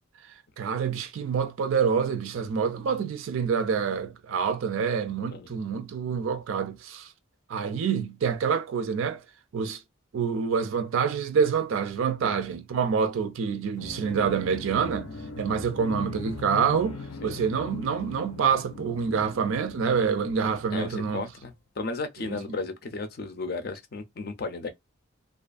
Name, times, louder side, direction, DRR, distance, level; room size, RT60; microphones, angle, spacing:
voice 1, 0.6-7.1 7.5-9.2 9.5-9.8 10.1-15.1 15.4-21.3 22.3-22.4, right 6 dB, 70° right, 0.3 m, -27 dB
voice 2, 5.3-5.6 12.2-12.4 17.2-17.5 20.7-24.7, left 3 dB, 45° left, 0.5 m, -35 dB
sound 1, 13.7-21.3, left 3 dB, 90° left, 0.7 m, -40 dB
2.4 x 2.4 x 2.4 m
head